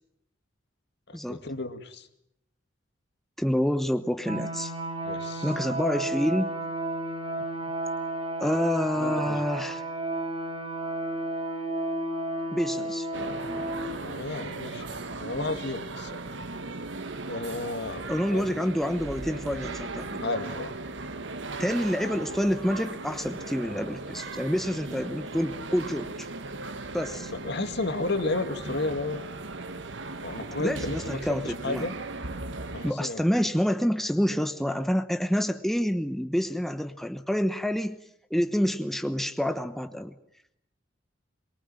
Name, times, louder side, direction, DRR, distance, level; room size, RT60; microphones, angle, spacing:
voice 1, 1.1-2.1 5.0-5.5 9.0-9.4 13.9-16.2 17.3-18.5 20.2-20.7 27.4-29.2 30.2-31.9 32.7-33.2, left 2 dB, 65° left, 8 dB, 2.2 m, -33 dB
voice 2, 3.4-4.7 5.4-6.5 8.4-9.8 12.5-13.1 18.1-20.2 21.6-26.3 26.9-27.3 30.6-31.9 32.8-38.0 38.3-40.2, equal, ahead, 8 dB, 1.0 m, -28 dB
sound 1, 4.3-13.9, right 2 dB, 30° right, 6.9 m, -32 dB
sound 2, 13.1-32.9, right 3 dB, 75° right, 1.6 m, -37 dB
23.5 x 23.0 x 9.1 m, 0.78 s
head